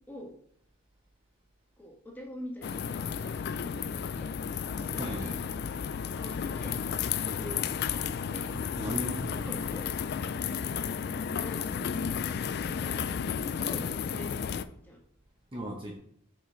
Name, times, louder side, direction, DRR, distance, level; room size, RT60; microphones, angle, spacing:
voice 1, 1.8-4.4 4.8-5.4 6.1-6.8 7.3-7.7 8.2-8.5 9.1-9.9 11.0-12.2 12.7-13.0 13.4-15.0, left 1 dB, 10° left, -2 dB, 1.5 m, -44 dB
sound 1, 2.6-14.6, left 7 dB, 45° left, 0.3 m, -33 dB
voice 2, 5.0-5.4 8.5-9.5 15.5-16.0, right 1 dB, 25° right, -1 dB, 0.8 m, -37 dB
6.2 x 5.0 x 3.8 m, 0.68 s
head